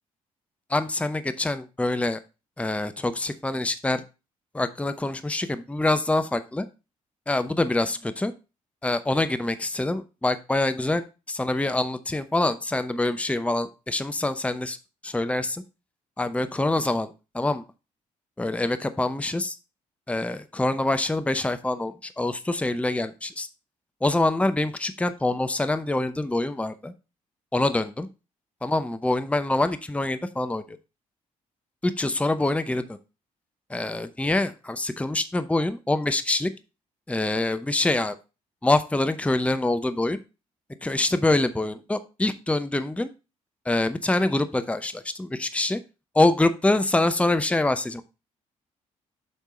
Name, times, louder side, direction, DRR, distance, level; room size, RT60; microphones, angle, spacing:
voice 1, 0.7-2.2 2.6-4.0 4.5-6.7 7.3-8.3 8.8-14.8 15.0-15.6 16.2-17.1 17.3-17.6 18.4-19.5 20.1-23.5 24.0-26.9 27.5-28.1 28.6-30.6 31.8-33.0 33.7-36.5 37.1-38.2 38.6-40.2 40.8-43.1 43.7-45.8 46.1-48.0, left 2 dB, 5° left, 11 dB, 0.7 m, -25 dB
7.4 x 5.5 x 3.7 m, 0.29 s
figure-of-eight pair, 40°, 17 cm